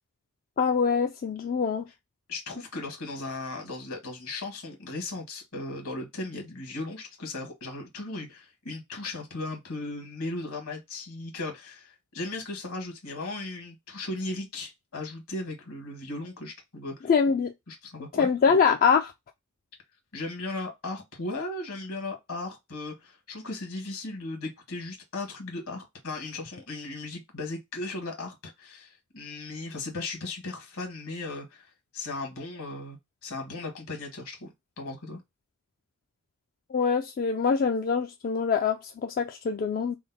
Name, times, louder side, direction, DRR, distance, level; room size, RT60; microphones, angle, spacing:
voice 1, 0.6-1.8 17.1-17.5 18.2-19.1 36.7-40.0, left 6 dB, 40° left, 0.3 m, -24 dB
voice 2, 2.3-17.1 17.7-18.3 20.1-34.5 34.8-35.2, left 2 dB, 70° left, 1.7 m, -37 dB
3.6 x 2.1 x 4.0 m
head